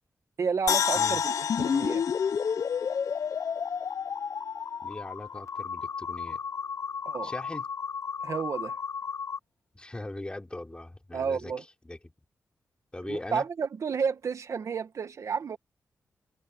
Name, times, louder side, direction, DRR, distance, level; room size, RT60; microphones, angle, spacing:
voice 1, 0.4-2.0 7.0-7.3 8.2-8.8 11.1-11.6 13.0-15.6, right 6 dB, 65° right, 1.6 m, -31 dB
sound 1, 0.7-3.9 4.2-4.3, left 7 dB, 80° left, 1.0 m, -30 dB
sound 2, 1.5-9.4, left 6 dB, 60° left, 0.5 m, -32 dB
voice 2, 4.8-6.4 7.2-7.7 9.7-12.1 12.9-13.4, left 1 dB, 15° left, 3.2 m, -40 dB
cardioid pair, 75°, 6 cm